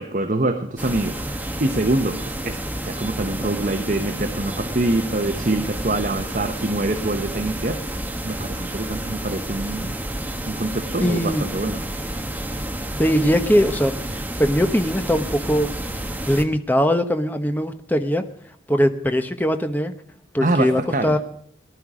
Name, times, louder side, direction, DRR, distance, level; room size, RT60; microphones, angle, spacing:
voice 1, 0.0-10.0 10.5-11.8 20.4-21.2, right 2 dB, 45° right, 6 dB, 1.0 m, -25 dB
sound 1, 0.8-16.4, right 1 dB, 10° right, 1.1 m, -30 dB
voice 2, 11.0-11.4 13.0-13.9 14.4-15.7 16.2-18.2 18.7-19.9 20.3-21.2, equal, 10° left, 8 dB, 0.9 m, -20 dB
19.0 x 11.5 x 4.9 m, 0.66 s
head